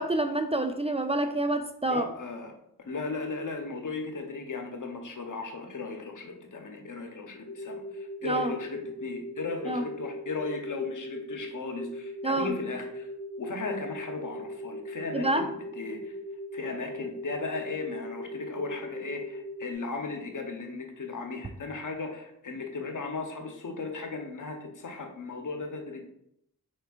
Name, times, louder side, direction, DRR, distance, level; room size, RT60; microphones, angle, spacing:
voice 1, 0.0-2.0 8.2-8.5 9.7-9.8 12.2-12.5 15.1-15.4, right 2 dB, 20° right, 7 dB, 0.4 m, -27 dB
voice 2, 1.9-2.5 2.8-13.1 13.4-16.1 16.5-26.0, left 3 dB, 70° left, 3 dB, 0.9 m, -36 dB
sound 1, 7.4-19.7, equal, 45° left, 1.2 m, -40 dB
4.5 x 4.3 x 2.4 m, 0.74 s
cardioid pair, 40°, 33 cm